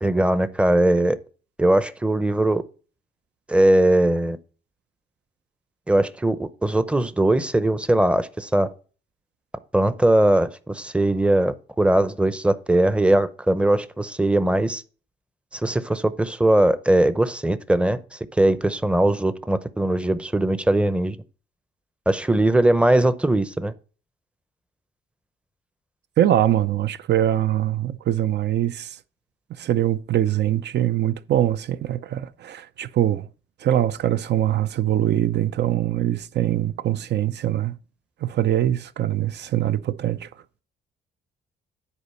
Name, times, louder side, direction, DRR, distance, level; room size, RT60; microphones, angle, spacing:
voice 1, 0.0-1.2 1.6-2.6 3.5-4.4 5.9-8.7 9.7-14.8 15.5-21.2 22.1-23.7, right 1 dB, 5° right, 0.6 m, -20 dB
voice 2, 26.2-29.0 29.5-33.3 33.6-37.8 38.2-40.3, right 12 dB, 60° right, 0.6 m, -23 dB
9.9 x 4.2 x 5.5 m
cardioid pair, 90°, 20 cm